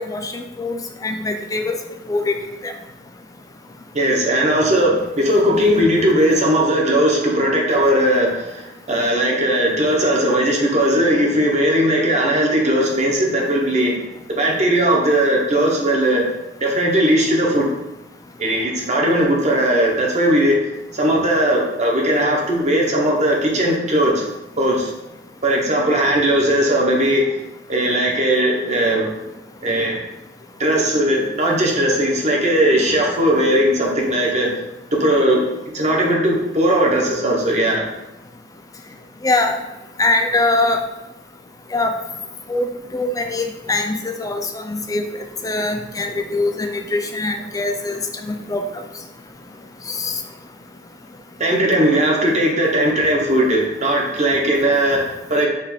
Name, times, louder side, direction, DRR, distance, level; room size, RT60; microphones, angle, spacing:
voice 1, 0.1-1.7 2.1-2.3 2.6-2.7 39.2-39.6 40.0-40.8 41.7-41.9 42.5-45.1 45.4-48.0 48.3-48.6 50.0-50.1, left 2 dB, 20° left, 5 dB, 0.4 m, -22 dB
voice 2, 3.9-14.0 14.3-16.2 16.6-17.7 18.4-20.5 20.9-24.2 24.6-24.9 25.4-27.3 27.7-29.1 29.6-30.0 30.6-34.5 34.9-35.4 35.7-37.9 51.4-55.5, right 1 dB, 40° right, -1 dB, 0.9 m, -18 dB
4.9 x 2.5 x 4.2 m, 0.95 s
head